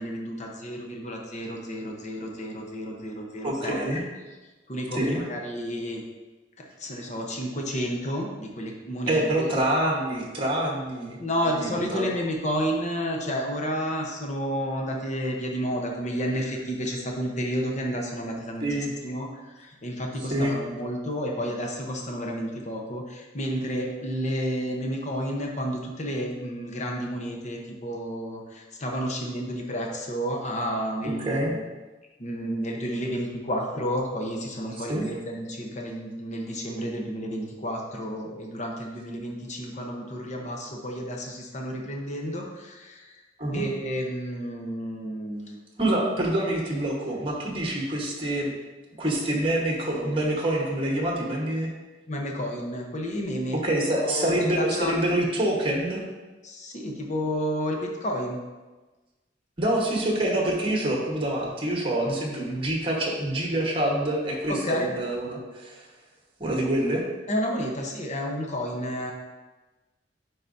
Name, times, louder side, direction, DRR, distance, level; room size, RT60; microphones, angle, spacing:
voice 1, 0.0-4.0 4.7-6.0 6.6-9.5 11.2-31.6 32.2-43.2 43.5-45.6 52.1-53.6 53.9-55.2 56.4-58.4 64.5-64.9 67.3-69.1, equal, 40° left, 0 dB, 0.9 m, -31 dB
voice 2, 3.4-4.0 4.9-5.2 9.1-12.1 18.6-18.9 20.3-20.5 31.2-31.5 34.9-35.0 43.4-43.7 45.8-48.5 49.0-51.7 53.6-56.0 59.6-65.8 66.4-67.0, right 1 dB, 30° right, -2 dB, 1.3 m, -26 dB
9.9 x 3.9 x 2.7 m, 1.2 s
head